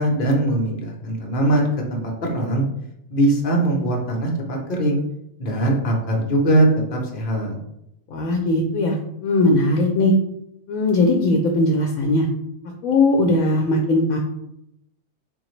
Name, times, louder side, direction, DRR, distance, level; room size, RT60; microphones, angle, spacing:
voice 1, 0.0-2.6 3.1-5.0 5.4-7.6, right 1 dB, 45° left, 0 dB, 0.9 m, -21 dB
voice 2, 8.1-9.0 9.2-10.2 10.7-12.3 12.8-14.2, left 2 dB, 75° left, 1 dB, 1.0 m, -19 dB
4.1 x 2.9 x 3.1 m, 0.80 s
omnidirectional pair, 1.5 m